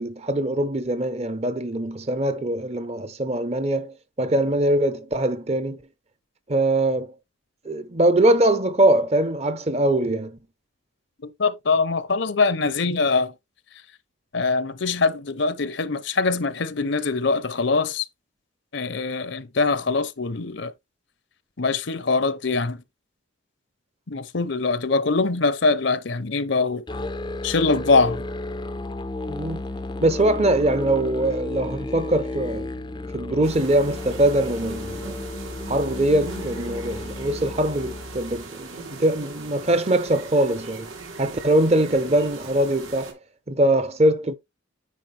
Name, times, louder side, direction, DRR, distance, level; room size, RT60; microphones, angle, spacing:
voice 1, 0.0-5.8 6.5-7.1 7.6-10.4 29.3-29.6 30.0-32.7 33.1-35.2 35.7-40.9 41.2-43.2 43.5-44.3, right 1 dB, 30° right, 0.9 m, -22 dB
voice 2, 11.4-13.3 14.3-18.0 18.7-20.7 21.6-22.8 24.1-26.8 27.4-28.2, left 4 dB, 55° left, 0.7 m, -23 dB
Musical instrument, 26.9-38.5, left 2 dB, 20° left, 0.5 m, -33 dB
sound 1, 33.4-43.1, right 3 dB, 75° right, 2.5 m, -39 dB
9.7 x 4.7 x 3.3 m
head